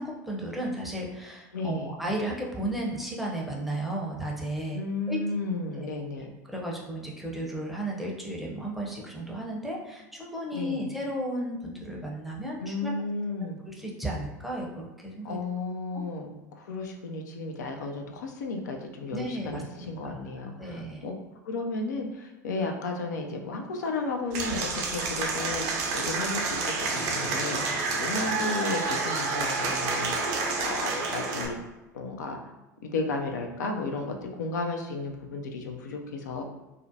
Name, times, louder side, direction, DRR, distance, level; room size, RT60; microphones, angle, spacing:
voice 1, 0.0-4.8 5.1-5.2 5.8-5.9 6.5-12.9 13.7-15.4 15.9-16.0 19.1-21.1, right 1 dB, ahead, -2 dB, 0.6 m, -34 dB
voice 2, 1.5-2.0 4.7-6.3 10.5-10.9 12.6-13.6 15.2-21.1 21.4-31.6 31.9-32.5 32.8-36.4, left 3 dB, 70° left, 3 dB, 0.4 m, -33 dB
Applause / Crowd, 24.3-31.5, right 3 dB, 60° right, 0.5 m, -29 dB
2.4 x 2.1 x 2.6 m, 1.0 s
figure-of-eight pair, 75°, 10 cm